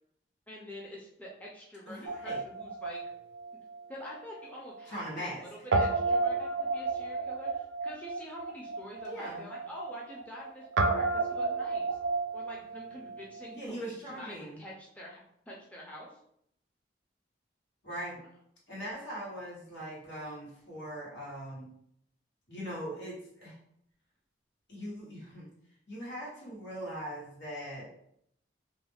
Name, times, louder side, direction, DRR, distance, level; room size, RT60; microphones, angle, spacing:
voice 1, 0.5-3.0 3.9-5.3 5.7-12.0 12.3-15.2 15.5-16.2, left 1 dB, 10° left, -4 dB, 0.4 m, -46 dB
voice 2, 1.9-2.4 4.9-5.4 9.0-9.5 13.5-14.6 17.8-18.2 18.7-21.7 22.5-23.6 24.7-25.5 25.9-27.9, equal, 80° left, -6 dB, 1.2 m, -40 dB
Guitar, 2.1-4.5 4.7-4.8 5.7-13.6, right 3 dB, 85° right, 0.3 m, -32 dB
2.4 x 2.1 x 3.3 m, 0.72 s
head